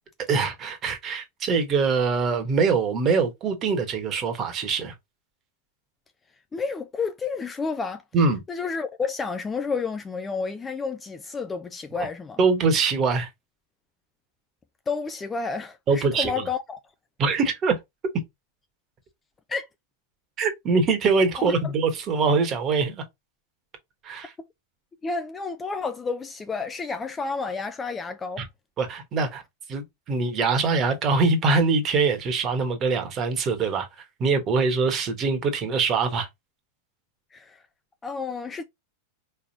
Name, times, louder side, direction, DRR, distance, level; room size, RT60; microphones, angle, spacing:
voice 1, 0.3-4.9 8.1-8.4 12.0-12.1 12.4-13.3 15.9-16.5 17.2-17.7 20.4-23.0 24.0-24.3 28.4-28.5 28.8-29.4 29.7-36.3, right 4 dB, 30° right, 1.3 m, -23 dB
voice 2, 6.5-8.0 8.5-12.4 14.9-16.8 19.5-19.7 21.5-21.6 24.4-24.5 25.0-28.4 37.3-37.6 38.0-38.6, left 4 dB, 15° left, 0.4 m, -30 dB
4.5 x 3.4 x 2.8 m
figure-of-eight pair, 90°, 0 cm